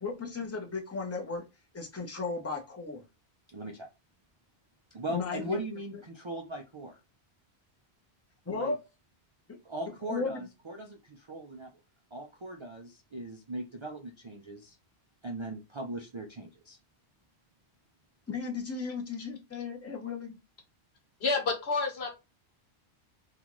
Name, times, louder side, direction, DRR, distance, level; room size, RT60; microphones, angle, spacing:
voice 1, 0.0-1.4 1.7-3.0 5.1-5.6 8.5-8.8 10.0-10.4 18.3-20.4, left 4 dB, 15° left, 2 dB, 0.6 m, -35 dB
voice 2, 3.5-3.9 4.9-7.0 8.5-8.7 9.6-11.7 12.1-14.8 15.2-16.8, right 2 dB, 45° right, 2 dB, 0.4 m, -39 dB
voice 3, 21.2-22.1, left 3 dB, 70° left, 2 dB, 1.3 m, -29 dB
3.8 x 2.4 x 3.0 m, 0.26 s
omnidirectional pair, 1.1 m